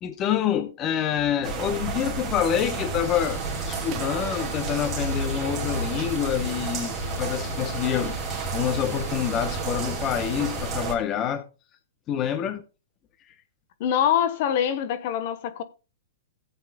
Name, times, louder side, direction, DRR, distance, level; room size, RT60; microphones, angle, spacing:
voice 1, 0.0-11.4 12.1-12.6, left 9 dB, 30° left, 1.0 m, -27 dB
sound 1, 1.4-11.0, right 3 dB, 20° right, 2.7 m, -31 dB
sound 2, 3.0-10.8, left 6 dB, 70° left, 1.8 m, -42 dB
sound 3, 3.9-4.3 5.8-6.3 8.3-8.7, right 11 dB, 35° right, 1.0 m, -43 dB
voice 2, 13.8-15.6, left 9 dB, 50° left, 1.1 m, -24 dB
16.0 x 8.2 x 2.3 m
hypercardioid pair, 135°, 0 cm